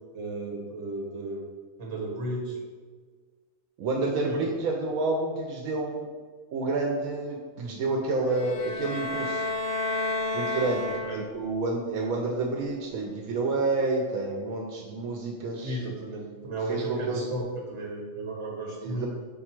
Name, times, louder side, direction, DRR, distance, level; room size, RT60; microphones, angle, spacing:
voice 1, 0.1-1.4 1.8-2.6 4.3-4.5 10.8-11.3 15.6-19.1, right 2 dB, 55° right, -1 dB, 1.3 m, -34 dB
voice 2, 3.8-6.1 6.5-9.5 10.3-10.8 11.1-15.8 16.7-17.3 18.8-19.1, right 3 dB, 85° right, 0 dB, 1.0 m, -29 dB
sound 1, 8.2-11.5, left 2 dB, 25° left, 0.6 m, -31 dB
5.3 x 2.3 x 4.3 m, 1.5 s
omnidirectional pair, 1.4 m